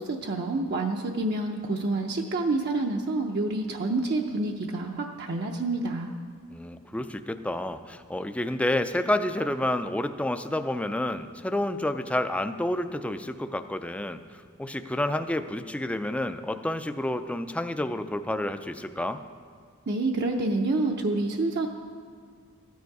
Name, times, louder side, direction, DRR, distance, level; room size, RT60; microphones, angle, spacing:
voice 1, 0.0-6.1 19.9-21.7, right 2 dB, 55° right, 2 dB, 0.6 m, -28 dB
voice 2, 6.5-19.2, left 1 dB, 5° left, 10 dB, 0.3 m, -29 dB
13.5 x 9.4 x 4.7 m, 2.1 s
head